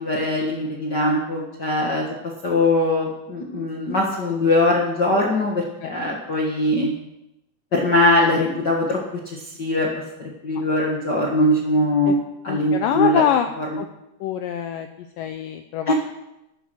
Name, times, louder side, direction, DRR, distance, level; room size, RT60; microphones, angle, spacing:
voice 1, 0.0-2.1 2.4-6.9 7.7-9.0 9.2-9.9 10.2-12.2 12.4-13.2 13.6-13.8 15.9-16.0, left 1 dB, 60° left, -1 dB, 1.0 m, -21 dB
voice 2, 12.5-13.5 13.8-13.9 14.2-14.9 15.2-15.9, left 10 dB, 85° left, 8 dB, 1.9 m, -24 dB
13.0 x 10.5 x 6.3 m, 0.89 s
omnidirectional pair, 4.7 m